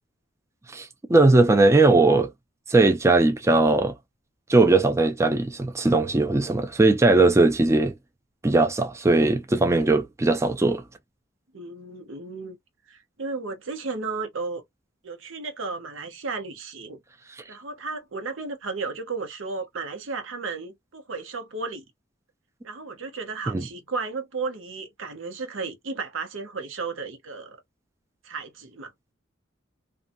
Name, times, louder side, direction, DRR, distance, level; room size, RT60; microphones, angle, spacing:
voice 1, 0.7-2.3 2.7-3.9 4.5-7.9 8.4-10.8 23.5-23.6, right 2 dB, 15° right, 0.4 m, -19 dB
voice 2, 11.5-12.6 12.9-14.6 15.0-17.0 17.5-21.8 22.6-27.6 28.2-28.9, right 4 dB, 80° right, 0.8 m, -34 dB
2.6 x 2.3 x 2.6 m
head